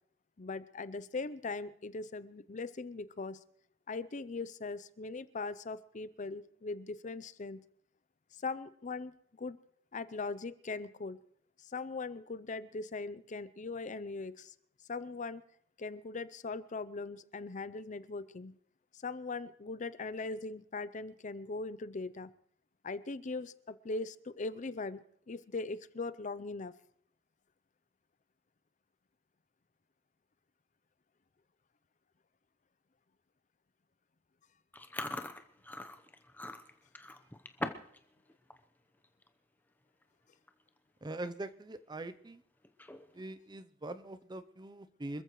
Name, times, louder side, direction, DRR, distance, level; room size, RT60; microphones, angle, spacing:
voice 1, 0.4-3.4 3.9-7.6 8.3-9.1 9.4-9.6 9.9-11.2 11.6-14.5 14.9-15.4 15.8-18.5 18.9-22.3 22.8-26.7, left 3 dB, 40° left, 15 dB, 0.6 m, -40 dB
Chewing mastication, 34.7-38.0 38.3-38.6 39.0-39.3 40.0-40.1 40.3-40.7 41.1-41.2 42.6-43.2, left 1 dB, 10° left, 0.8 m, -42 dB
voice 2, 41.0-42.4 43.1-45.2, right 2 dB, 20° right, 12 dB, 0.6 m, -42 dB
26.0 x 14.5 x 3.1 m, 0.64 s
head